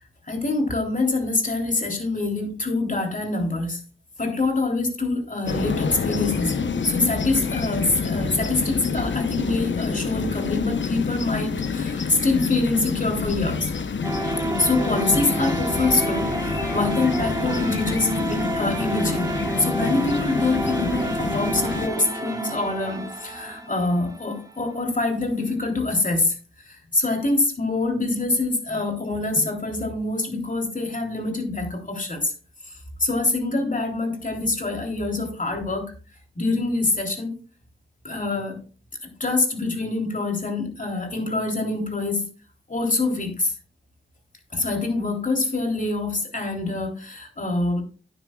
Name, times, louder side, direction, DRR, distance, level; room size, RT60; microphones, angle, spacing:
voice 1, 0.3-3.8 4.2-6.6 6.8-13.7 14.6-19.3 19.6-26.4 26.6-32.3 32.6-32.7 33.0-35.9 36.4-37.3 38.0-38.6 39.0-42.2 42.7-43.5 44.5-47.8, left 2 dB, 40° left, 2 dB, 3.6 m, -25 dB
sound 1, 5.5-21.9, left 5 dB, 65° left, 1.0 m, -28 dB
sound 2, 14.0-24.9, right 2 dB, 15° right, 2.5 m, -29 dB
12.0 x 10.0 x 2.5 m, 0.37 s
cardioid pair, 45°, 21 cm